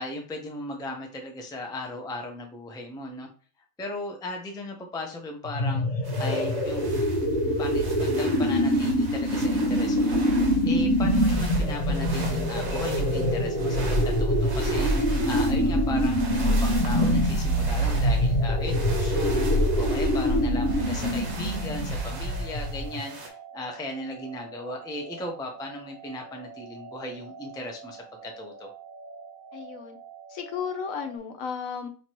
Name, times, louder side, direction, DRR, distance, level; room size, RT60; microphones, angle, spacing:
voice 1, 0.0-3.3 3.8-5.8 6.2-7.0 7.6-28.7, left 2 dB, 5° left, 2 dB, 0.4 m, -37 dB
sound 1, 5.4-23.0, equal, 60° left, 1.1 m, -24 dB
sound 2, 6.0-23.3, right 3 dB, 60° right, 1.0 m, -40 dB
sound 3, 12.1-31.2, right 5 dB, 85° right, 1.0 m, -46 dB
voice 2, 29.5-30.0 30.3-31.9, left 7 dB, 80° left, 7 dB, 1.1 m, -34 dB
4.5 x 2.8 x 2.9 m, 0.40 s
omnidirectional pair, 1.4 m